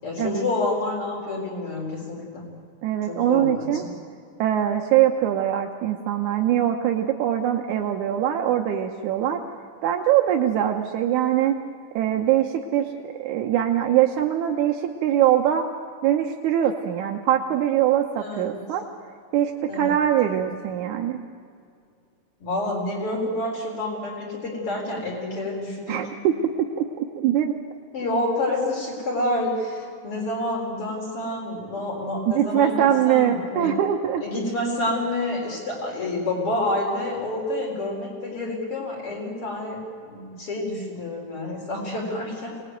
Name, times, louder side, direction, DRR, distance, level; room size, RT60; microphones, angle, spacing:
voice 1, 0.0-2.5 3.1-3.9 18.2-18.6 19.6-20.5 22.4-26.0 27.9-33.7 34.2-42.6, left 1 dB, 50° left, -2 dB, 4.9 m, -28 dB
voice 2, 2.8-3.8 4.4-9.4 9.8-11.6 11.9-15.7 16.0-18.9 19.3-21.2 25.9-26.3 26.8-27.5 32.3-34.2, right 11 dB, 85° right, 3 dB, 2.5 m, -22 dB
25.5 x 19.5 x 9.2 m, 2.3 s
omnidirectional pair, 3.3 m